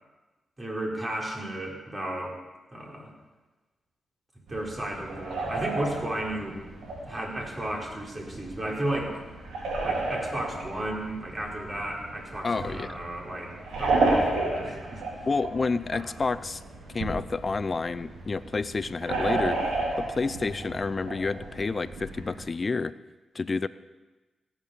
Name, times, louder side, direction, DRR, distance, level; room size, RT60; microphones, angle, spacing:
voice 1, 0.6-2.4 2.7-3.1 4.5-6.6 7.1-9.2 9.8-13.5 13.8-15.0, right 1 dB, 30° right, -1 dB, 4.4 m, -33 dB
sound 1, 4.5-22.5, right 2 dB, 80° right, 3.5 m, -32 dB
voice 2, 12.4-12.9 15.3-16.6 16.9-19.6 20.0-22.9 23.3-23.7, left 4 dB, 45° left, 16 dB, 0.6 m, -29 dB
17.0 x 7.4 x 6.9 m, 1.2 s
supercardioid pair, 45°, 0 cm